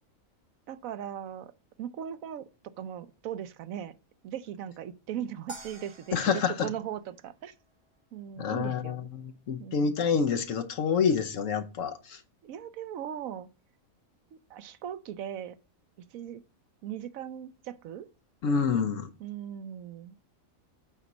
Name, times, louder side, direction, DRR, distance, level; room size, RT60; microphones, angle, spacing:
voice 1, 0.7-1.5 1.8-2.5 2.8-4.0 4.2-7.5 8.1-9.0 9.6-10.0 12.4-13.5 14.3-15.6 16.1-16.4 16.8-18.1 18.5-18.8 19.2-20.2, right 10 dB, 80° right, 1.1 m, -39 dB
sound 1, 5.5-7.9, right 1 dB, 25° right, 1.1 m, -48 dB
voice 2, 6.1-6.7 8.4-12.2 18.4-19.1, left 6 dB, 70° left, 1.2 m, -28 dB
8.6 x 4.0 x 6.0 m
omnidirectional pair, 1.4 m